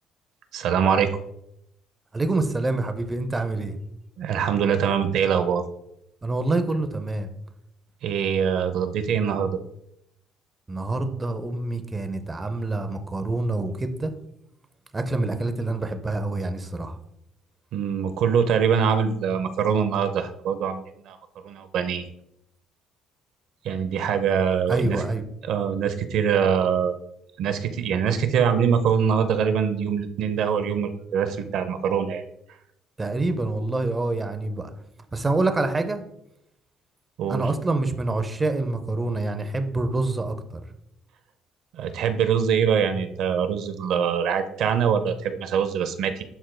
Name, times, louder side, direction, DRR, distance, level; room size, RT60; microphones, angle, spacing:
voice 1, 0.5-1.1 4.2-5.6 8.0-9.6 17.7-21.2 21.4-22.1 23.6-25.0 25.5-27.0 27.4-32.2 37.2-37.4 41.7-46.2, right 7 dB, 60° right, 9 dB, 0.6 m, -23 dB
voice 2, 2.1-3.8 6.2-7.3 10.7-14.1 14.9-17.0 24.7-25.3 33.0-34.7 35.1-36.0 37.3-40.6, right 2 dB, 15° right, 8 dB, 0.5 m, -26 dB
11.0 x 4.5 x 2.2 m, 0.79 s
cardioid pair, 175°, 0 cm